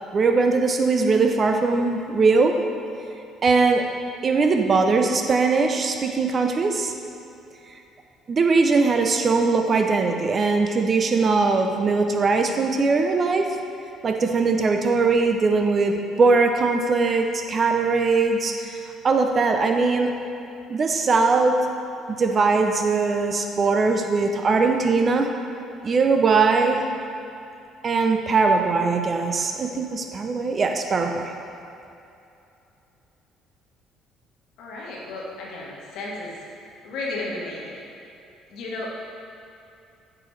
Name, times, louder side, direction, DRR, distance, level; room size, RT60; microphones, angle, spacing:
voice 1, 0.1-2.6 3.4-3.8 4.2-6.9 8.3-13.5 14.0-18.5 19.0-20.1 20.7-21.6 22.1-25.3 25.8-26.8 27.8-31.2, right 4 dB, 40° right, 4 dB, 0.6 m, -20 dB
voice 2, 34.6-36.4 36.8-37.8 38.5-38.9, left 2 dB, 65° left, -3 dB, 1.4 m, -33 dB
8.4 x 4.9 x 3.3 m, 2.7 s
hypercardioid pair, 55°, 0 cm